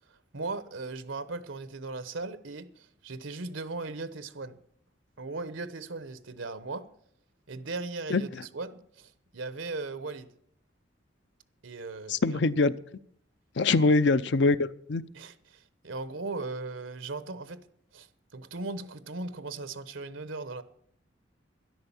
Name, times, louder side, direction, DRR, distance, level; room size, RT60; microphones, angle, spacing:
voice 1, 0.1-4.6 5.2-6.9 7.5-10.3 11.6-12.4 13.7-13.9 15.1-17.6 17.9-20.6, right 3 dB, 80° right, 1.0 m, -38 dB
voice 2, 12.1-12.7 13.6-15.0, left 3 dB, 60° left, 0.6 m, -23 dB
12.5 x 11.0 x 7.2 m
head